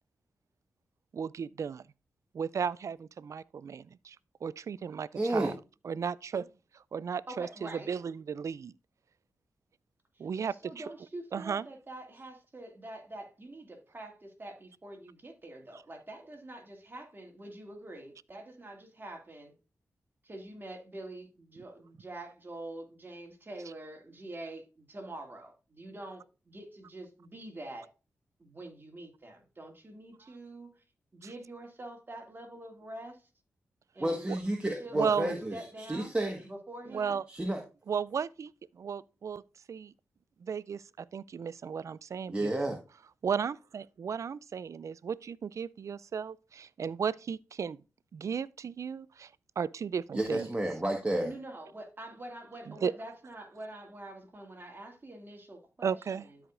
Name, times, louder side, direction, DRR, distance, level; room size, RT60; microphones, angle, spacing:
voice 1, 1.1-1.9 2.3-4.2 4.4-5.5 5.8-6.5 6.7-8.7 10.2-10.8 11.3-11.7 31.2-31.3 34.9-35.3 36.9-37.2 37.9-38.5 38.8-39.4 39.7-39.9 40.4-42.8 43.2-47.8 48.1-49.3 49.6-50.5 52.7-52.9 55.8-56.3, right 6 dB, 60° right, 0.3 m, -35 dB
voice 2, 5.1-5.5 34.0-36.4 37.3-37.6 42.3-42.8 50.1-51.3, right 1 dB, 20° right, 1.4 m, -31 dB
voice 3, 7.3-8.0 10.2-19.5 20.2-27.9 28.4-30.8 31.1-33.3 33.9-34.4 34.7-36.1 36.4-37.2 51.2-56.0 56.2-56.4, right 1 dB, 35° right, 2.4 m, -46 dB
13.0 x 4.8 x 2.5 m
supercardioid pair, 45°, 6 cm